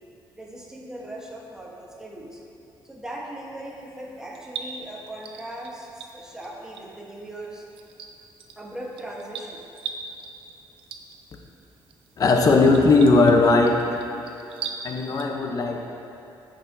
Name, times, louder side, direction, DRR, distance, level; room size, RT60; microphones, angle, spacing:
voice 1, 0.3-2.4 2.8-7.6 8.6-9.7, right 1 dB, 5° right, -2 dB, 1.2 m, -39 dB
sound 1, 3.6-15.3, right 6 dB, 85° right, 0.6 m, -41 dB
voice 2, 12.2-14.1 14.8-15.8, left 3 dB, 45° left, 3 dB, 0.8 m, -18 dB
14.5 x 4.9 x 2.8 m, 2.8 s
cardioid pair, 120°, 9 cm